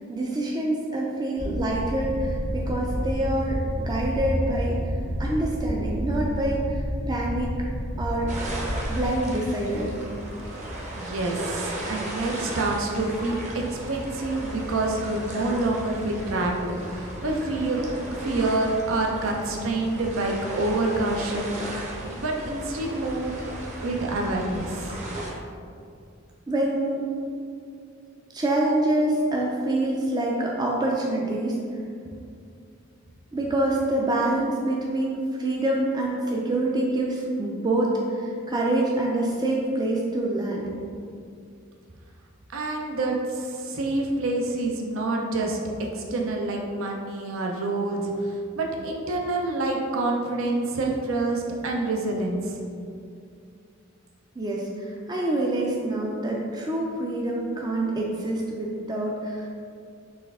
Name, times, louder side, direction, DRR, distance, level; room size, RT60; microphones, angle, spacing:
voice 1, 0.1-4.8 5.2-7.5 8.0-8.3 8.9-9.9 26.5-27.1 28.3-31.5 33.3-40.7 54.4-59.5, right 1 dB, 20° right, -2 dB, 0.4 m, -26 dB
sound 1, 1.4-9.1, equal, 90° left, 1.1 m, -29 dB
sound 2, 8.3-25.3, right 1 dB, 35° right, 0.7 m, -36 dB
voice 2, 10.9-17.8 18.1-21.6 22.0-23.3 23.8-25.0 42.5-45.6 45.9-52.6, right 2 dB, 75° right, 0 dB, 0.5 m, -27 dB
4.2 x 3.2 x 3.6 m, 2.4 s
head